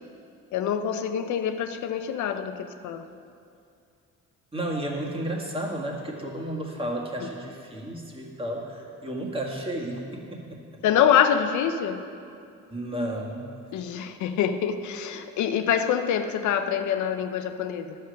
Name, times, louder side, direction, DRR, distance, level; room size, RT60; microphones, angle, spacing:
voice 1, 0.5-3.0 7.2-7.3 10.8-12.0 13.7-18.0, left 9 dB, 75° left, 8 dB, 0.6 m, -25 dB
voice 2, 4.5-10.8 12.7-13.4, right 1 dB, 20° right, -1 dB, 1.7 m, -32 dB
11.0 x 6.9 x 5.2 m, 2.5 s
cardioid pair, 90°, 30 cm